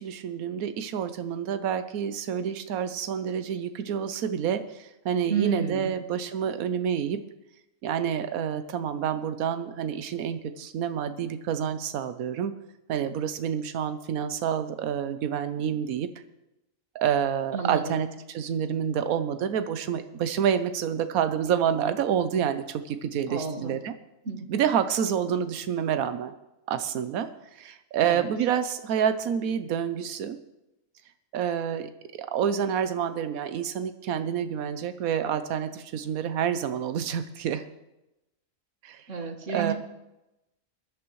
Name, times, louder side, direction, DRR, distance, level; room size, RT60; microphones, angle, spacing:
voice 1, 0.0-7.2 7.8-12.5 12.9-16.1 16.9-23.9 24.5-26.3 26.7-30.4 31.3-37.7 38.8-39.7, right 8 dB, 90° right, 10 dB, 1.2 m, -28 dB
voice 2, 5.3-5.9 17.5-18.0 23.3-23.8 24.3-24.5 28.0-28.2 39.1-39.7, right 6 dB, 60° right, 3 dB, 1.9 m, -30 dB
19.0 x 12.0 x 3.1 m, 0.93 s
omnidirectional pair, 1.4 m